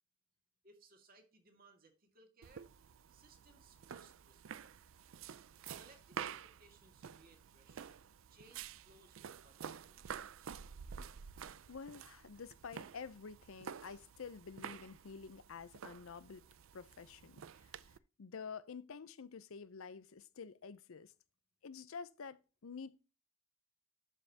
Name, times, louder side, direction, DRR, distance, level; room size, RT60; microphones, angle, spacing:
voice 1, 0.6-2.7 3.1-4.8 5.8-10.6, right 2 dB, 45° right, 2.0 m, -65 dB
sound 1, 2.4-18.0, right 7 dB, 70° right, 0.4 m, -50 dB
voice 2, 11.7-16.4 16.7-17.4 18.2-21.1 21.6-23.0, left 5 dB, 75° left, 0.6 m, -49 dB
11.5 x 5.4 x 2.8 m
head